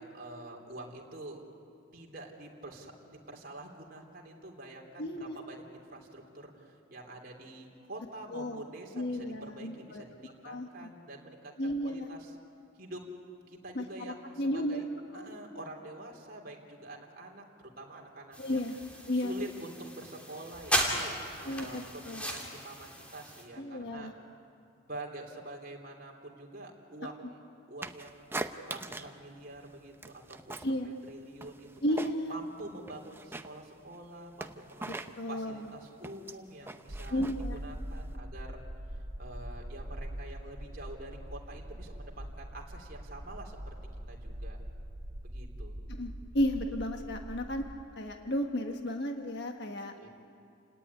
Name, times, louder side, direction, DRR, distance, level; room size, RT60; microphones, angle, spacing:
voice 1, 0.0-1.4 1.9-12.4 12.7-13.0 13.5-14.9 15.1-17.4 17.8-18.6 19.1-21.1 21.4-24.1 24.9-27.4 27.7-32.0 32.3-34.9 35.3-37.2 37.5-38.6 38.9-43.8 44.1-44.6 45.2-45.8 50.0-50.1, right 1 dB, 45° right, 0 dB, 3.4 m, -47 dB
voice 2, 5.0-5.4 8.3-8.6 9.0-10.0 10.4-10.9 11.6-12.1 13.7-14.8 15.1-15.4 18.4-18.7 19.1-19.3 21.5-22.2 23.6-24.1 30.6-30.9 31.8-32.3 34.9-35.6 37.1-37.6 46.0-47.6 48.0-49.9, left 1 dB, 55° left, 4 dB, 1.5 m, -33 dB
sound 1, 18.3-23.4, equal, 5° left, 3.0 m, -36 dB
sound 2, 27.8-29.2 29.5-30.8 31.1-32.4 32.7-38.1, right 2 dB, 10° right, 0.7 m, -42 dB
sound 3, 36.9-47.8, right 1 dB, 75° right, 1.7 m, -42 dB
29.0 x 18.0 x 9.8 m, 2.4 s
head